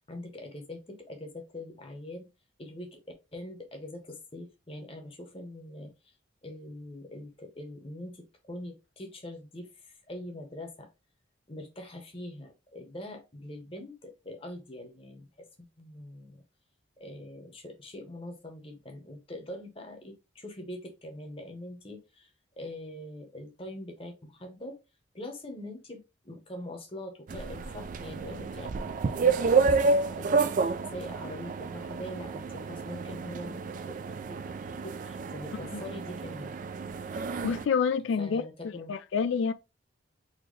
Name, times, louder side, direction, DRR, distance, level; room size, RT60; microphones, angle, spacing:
voice 1, 0.1-2.3 2.6-3.0 3.3-5.9 6.4-10.9 11.5-16.4 17.0-22.3 22.6-24.8 25.1-29.8 30.1-36.6 38.2-38.9, left 1 dB, 30° left, 0.9 m, -43 dB
sound 1, 27.3-37.7, right 4 dB, 40° right, 0.3 m, -30 dB
voice 2, 37.1-39.5, left 6 dB, 70° left, 0.3 m, -29 dB
4.1 x 2.8 x 3.1 m
head